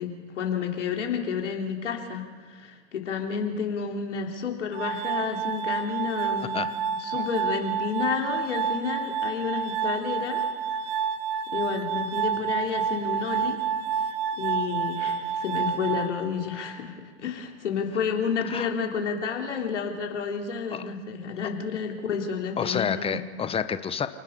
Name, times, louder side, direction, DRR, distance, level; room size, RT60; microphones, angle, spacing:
voice 1, 0.0-6.6 7.0-10.4 11.5-13.6 14.0-23.3, left 6 dB, 85° left, 1 dB, 3.6 m, -30 dB
Glass, 4.7-16.7, right 7 dB, 50° right, 1.4 m, -29 dB
voice 2, 22.6-24.1, left 7 dB, 15° left, 12 dB, 1.0 m, -29 dB
28.5 x 19.0 x 5.5 m, 1.4 s
hypercardioid pair, 120°, 35 cm